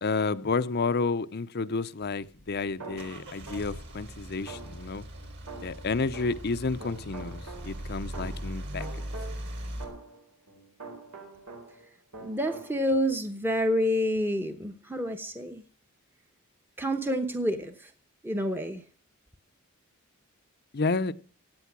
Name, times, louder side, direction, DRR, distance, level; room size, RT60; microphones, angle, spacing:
voice 1, 0.0-5.0 5.6-8.9 20.7-21.1, left 4 dB, 45° left, 0.6 m, -30 dB
Car / Engine starting / Idling, 2.4-9.8, equal, 50° right, 3.9 m, -40 dB
sound 1, 2.8-3.9 4.5-6.5 6.8-11.9 12.1-12.7, right 3 dB, 90° right, 4.1 m, -45 dB
voice 2, 12.2-15.6 16.8-17.9 18.2-18.8, equal, 10° right, 0.9 m, -28 dB
16.5 x 9.1 x 6.0 m
head